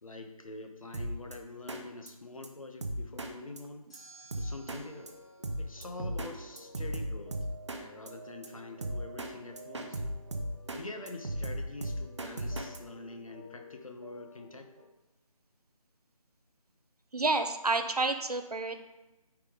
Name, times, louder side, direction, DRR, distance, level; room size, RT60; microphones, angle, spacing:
voice 1, 0.0-3.8 4.4-5.1 5.6-7.3 7.7-10.0 10.7-14.7, left 2 dB, 65° left, 5 dB, 1.0 m, -45 dB
Drum kit, 0.9-1.3 1.7-1.8 2.1-2.2 2.4-2.5 2.8-3.3 3.6-3.7 3.9-4.0 4.3-4.8 5.1-5.2 5.4-6.3 6.6-8.1 8.4-8.5 8.8-9.3 9.6-10.8 11.1-12.8, right 1 dB, 50° right, 0.7 m, -35 dB
sound 1, 1.1-2.0 3.9-6.5, right 3 dB, 10° left, 0.6 m, -59 dB
sound 2, 4.9-14.8, equal, 30° right, 1.3 m, -52 dB
voice 2, 17.1-18.8, right 3 dB, 85° right, 8 dB, 0.8 m, -29 dB
9.3 x 3.6 x 3.7 m, 1.1 s
figure-of-eight pair, 160°, 19 cm